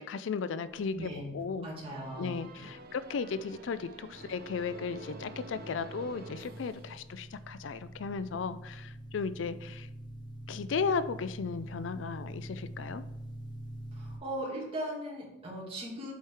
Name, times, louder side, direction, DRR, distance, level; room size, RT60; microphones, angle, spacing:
voice 1, 0.0-1.7 2.2-9.9 10.5-13.0, left 5 dB, 80° left, 14 dB, 0.4 m, -35 dB
voice 2, 0.8-1.3 1.6-2.3 13.9-16.1, right 1 dB, 30° right, -4 dB, 2.4 m, -38 dB
sound 1, 1.9-7.5, right 2 dB, 55° right, 0.8 m, -48 dB
sound 2, 3.5-14.2, right 1 dB, 25° left, 1.4 m, -46 dB
8.1 x 4.6 x 4.7 m, 0.89 s
head